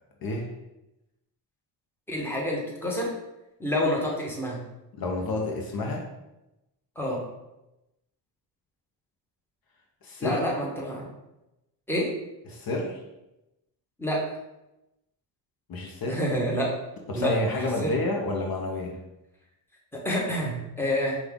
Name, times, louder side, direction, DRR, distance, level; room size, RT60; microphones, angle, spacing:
voice 1, 2.1-3.1 3.6-4.6 7.0-7.2 10.2-11.1 11.9-12.1 14.0-14.2 16.1-16.7 17.1-17.9 19.9-21.2, equal, 5° left, -3 dB, 1.1 m, -28 dB
voice 2, 4.9-6.0 10.0-10.4 12.5-13.0 15.7-16.2 17.1-19.0, left 2 dB, 50° left, 1 dB, 0.8 m, -29 dB
5.3 x 2.4 x 3.6 m, 0.94 s
cardioid pair, 95°, 44 cm